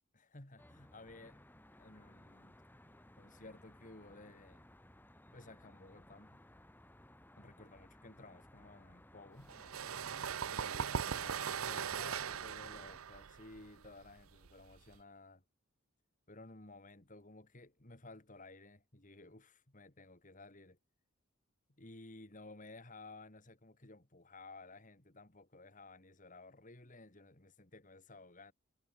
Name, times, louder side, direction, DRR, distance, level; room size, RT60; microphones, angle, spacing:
voice 1, 0.1-1.4 1.8-2.6 3.2-4.6 5.3-6.4 7.4-9.5 10.5-15.4 16.3-20.8 21.8-28.5, left 2 dB, 40° left, 2.6 m, -55 dB
Traffic noise roadway noise, 0.6-13.0, left 1 dB, 10° left, 1.6 m, -60 dB
sound 1, 9.5-15.0, right 7 dB, 90° right, 0.7 m, -40 dB
head